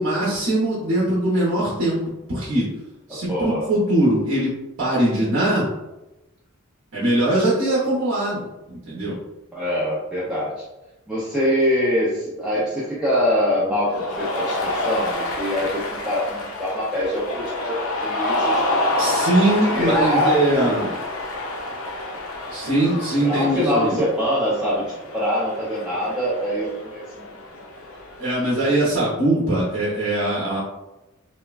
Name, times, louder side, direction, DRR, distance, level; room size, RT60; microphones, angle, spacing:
voice 1, 0.0-2.0 2.3-2.7 3.1-4.5 4.8-5.7 6.9-9.2 19.0-20.9 22.5-24.0 28.2-30.6, right 1 dB, 75° right, -8 dB, 0.8 m, -21 dB
voice 2, 3.3-3.7 9.5-10.5 11.1-18.7 19.7-21.0 23.2-27.2, equal, 5° right, -9 dB, 0.5 m, -24 dB
Cheering, 13.8-28.7, left 1 dB, 80° left, 0.5 m, -28 dB
3.3 x 2.1 x 2.3 m, 0.99 s
head